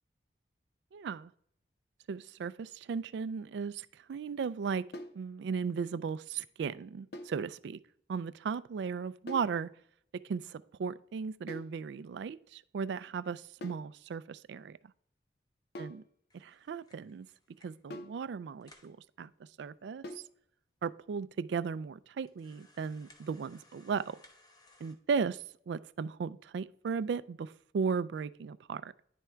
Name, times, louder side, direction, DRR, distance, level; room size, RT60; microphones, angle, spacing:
voice 1, 0.9-1.3 2.1-4.8 5.1-7.8 8.1-9.7 10.2-14.8 15.8-16.0 16.3-17.3 17.6-20.2 20.8-24.2 24.8-28.9, right 5 dB, 70° right, 0.3 m, -36 dB
sound 1, 4.9-5.2 7.1-7.4 9.3-9.6 11.5-11.8 13.6-13.9 15.7-16.1 17.9-18.2 20.0-20.3, left 1 dB, 60° left, 0.6 m, -44 dB
sound 2, 16.3-17.9 18.3-18.4 18.6-19.0 19.7-19.8 20.0-20.1 20.8-20.9 21.4-21.5 22.2-24.9, left 2 dB, 20° left, 0.7 m, -62 dB
10.0 x 3.5 x 4.4 m
head